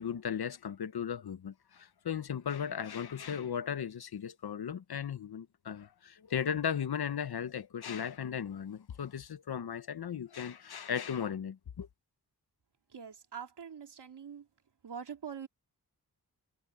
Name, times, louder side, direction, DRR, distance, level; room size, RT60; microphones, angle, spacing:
voice 1, 0.0-11.9, left 8 dB, 70° left, 1.0 m, -36 dB
voice 2, 12.9-14.4 14.8-15.5, right 7 dB, 90° right, 3.4 m, -44 dB
wide cardioid pair, 135°, 39 cm